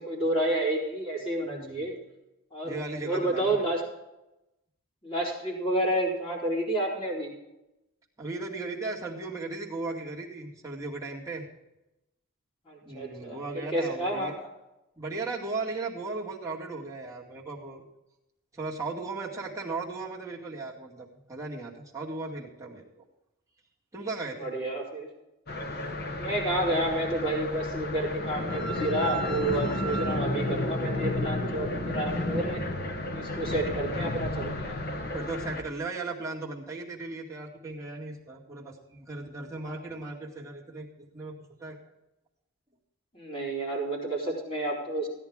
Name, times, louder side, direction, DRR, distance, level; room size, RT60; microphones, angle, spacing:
voice 1, 0.0-2.0 2.5-2.8 3.0-3.8 5.0-7.3 12.7-13.4 13.7-14.5 24.4-25.1 26.2-32.6 33.1-34.8 39.7-39.8 43.1-45.1, right 1 dB, 25° left, -4 dB, 4.2 m, -30 dB
voice 2, 1.4-1.9 2.6-3.6 8.2-11.5 12.8-14.3 15.0-17.8 18.5-23.1 23.9-24.6 33.6-33.8 35.1-40.9 41.1-41.9, right 3 dB, 15° right, -4 dB, 2.2 m, -37 dB
sound 1, 25.5-35.6, left 1 dB, 45° left, 1.2 m, -32 dB
16.0 x 10.5 x 3.6 m, 0.92 s
head